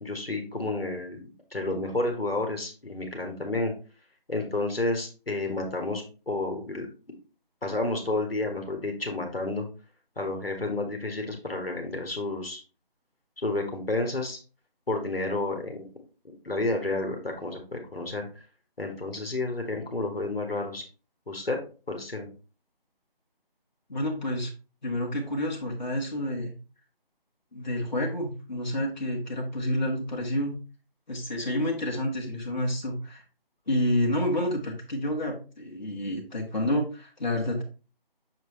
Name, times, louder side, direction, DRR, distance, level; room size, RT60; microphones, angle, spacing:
voice 1, 0.0-1.2 1.5-3.7 4.3-6.9 7.6-9.7 10.2-12.6 13.4-14.4 14.9-15.8 16.4-18.3 18.8-20.8 21.3-21.6 21.9-22.3, left 2 dB, 75° left, 3 dB, 1.6 m, -30 dB
voice 2, 23.9-24.5 24.8-26.5 27.5-30.6 31.1-33.2 33.7-37.6, left 1 dB, 50° left, -1 dB, 1.5 m, -29 dB
6.5 x 4.6 x 3.1 m, 0.34 s
figure-of-eight pair, 160°, 30 cm